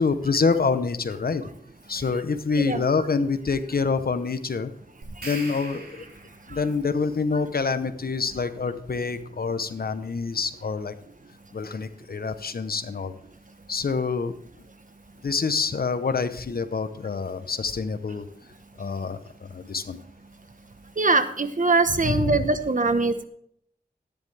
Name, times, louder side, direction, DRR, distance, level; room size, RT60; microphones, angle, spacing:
voice 1, 0.0-1.4 1.9-4.7 5.2-6.1 6.5-10.9 11.5-13.1 13.7-14.3 15.2-18.3 18.8-20.0 21.9-22.4, left 4 dB, 75° left, 11 dB, 0.9 m, -26 dB
sound 1, 5.0-6.6, right 2 dB, 90° right, 3.1 m, -40 dB
voice 2, 21.0-23.3, right 3 dB, 55° right, 10 dB, 1.2 m, -22 dB
14.0 x 10.0 x 3.4 m, 0.66 s
cardioid pair, 40°, 16 cm